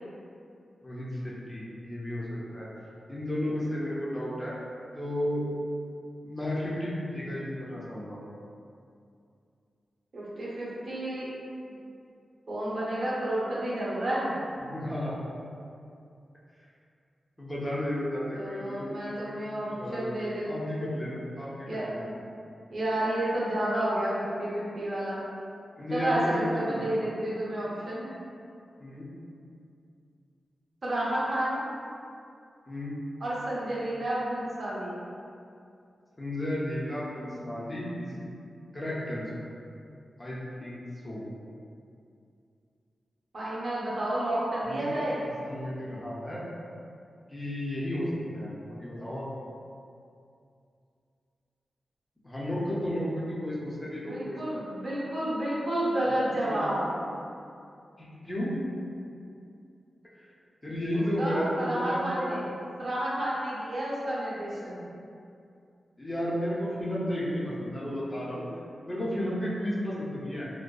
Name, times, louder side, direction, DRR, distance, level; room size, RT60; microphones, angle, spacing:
voice 1, 0.8-2.3 2.5-2.7 3.1-4.5 4.9-5.4 6.2-8.2 14.6-15.2 17.4-20.2 20.5-22.1 25.8-26.8 28.8-29.1 32.7-33.0 36.2-38.2 38.7-39.3 40.2-40.8 41.0-41.2 44.6-44.9 45.2-46.4 47.3-49.3 52.2-54.4 56.3-56.6 58.0-58.6 60.6-62.4 66.0-68.5 68.8-70.5, equal, 15° left, -7 dB, 0.5 m, -33 dB
voice 2, 10.1-11.3 12.5-14.3 18.3-20.4 21.6-22.1 22.7-25.2 25.9-28.2 30.8-31.7 33.2-34.9 43.3-45.2 53.8-56.9 60.9-62.4 62.8-64.8, right 1 dB, 55° right, -7 dB, 0.6 m, -30 dB
2.5 x 2.2 x 2.2 m, 2.5 s
wide cardioid pair, 100°, 0 cm